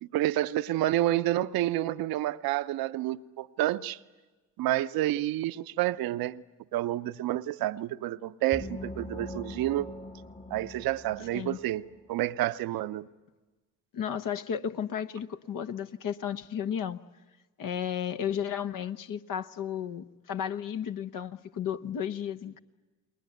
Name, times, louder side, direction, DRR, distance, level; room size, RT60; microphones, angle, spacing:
voice 1, 0.0-4.0 4.6-6.4 6.7-9.9 10.5-13.1, right 15 dB, 70° right, 0.8 m, -29 dB
sound 1, 8.5-12.1, left 1 dB, 20° left, 1.1 m, -42 dB
voice 2, 13.9-17.0 17.6-22.6, left 8 dB, 60° left, 1.1 m, -33 dB
29.5 x 20.5 x 9.3 m
hypercardioid pair, 45°, 36 cm